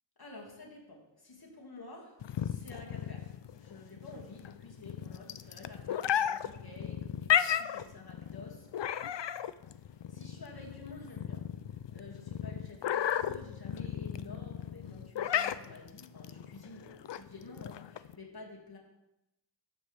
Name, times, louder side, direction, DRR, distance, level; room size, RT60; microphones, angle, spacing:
voice 1, 0.2-8.7 9.8-11.5 11.9-18.8, left 2 dB, 55° left, -2 dB, 2.4 m, -50 dB
sound 1, 2.2-18.2, left 10 dB, 75° left, 0.5 m, -34 dB
12.5 x 7.7 x 3.5 m, 0.89 s
wide cardioid pair, 55°, 43 cm